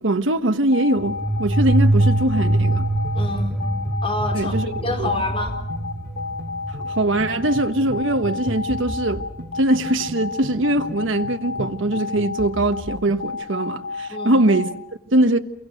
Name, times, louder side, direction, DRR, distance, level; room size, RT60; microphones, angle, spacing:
voice 1, 0.0-2.8 4.3-4.7 5.0-5.1 6.8-9.2 9.6-14.7 15.1-15.4, right 1 dB, 90° right, 1.3 m, -21 dB
sound 1, 0.7-14.7, left 4 dB, 85° left, 2.8 m, -31 dB
sound 2, 1.0-9.4, right 2 dB, 5° right, 2.6 m, -24 dB
sound 3, 2.0-13.3, equal, 50° right, 4.1 m, -37 dB
voice 2, 3.1-3.6 4.0-5.6 14.1-14.4, left 2 dB, 30° left, 4.6 m, -28 dB
29.5 x 23.0 x 6.5 m
head